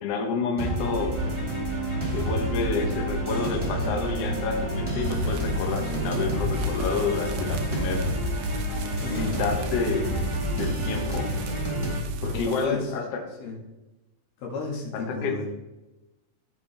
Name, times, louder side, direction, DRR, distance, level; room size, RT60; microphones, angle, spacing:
voice 1, 0.0-1.1 2.1-8.0 9.1-10.1 10.6-11.3 12.2-13.0 15.1-15.4, left 4 dB, 60° left, 3 dB, 1.7 m, -29 dB
sound 1, 0.6-12.0, right 1 dB, 30° right, 0.5 m, -30 dB
sound 2, 1.1-12.4, equal, 50° right, 1.2 m, -32 dB
sound 3, 5.0-12.7, right 7 dB, 85° right, 2.6 m, -43 dB
voice 2, 12.1-13.0 13.4-13.6 14.4-15.5, left 4 dB, 85° left, -1 dB, 3.8 m, -33 dB
15.0 x 5.2 x 3.4 m, 1.0 s
omnidirectional pair, 4.2 m